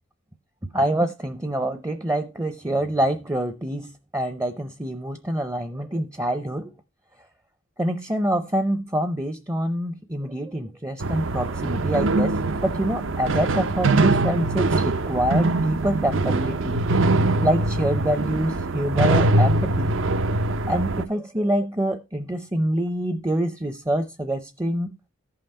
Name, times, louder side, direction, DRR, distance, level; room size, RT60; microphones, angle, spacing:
voice 1, 0.7-6.7 7.8-16.8 17.4-20.0 20.7-25.0, right 1 dB, 15° right, 0.6 m, -26 dB
sound 1, 11.0-21.0, right 2 dB, 65° right, 0.7 m, -23 dB
14.5 x 5.7 x 4.2 m
head